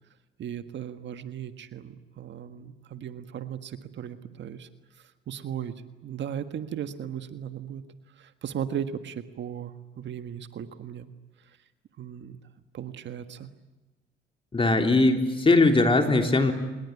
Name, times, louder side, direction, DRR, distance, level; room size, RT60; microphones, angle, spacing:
voice 1, 0.4-4.7 5.3-5.7 6.0-7.8 8.2-11.1 12.0-12.4 12.7-13.5, right 9 dB, 65° right, 9 dB, 1.6 m, -36 dB
voice 2, 14.5-16.5, left 2 dB, 25° left, 4 dB, 3.6 m, -20 dB
26.0 x 21.0 x 9.7 m, 1.1 s
cardioid pair, 90°, 20 cm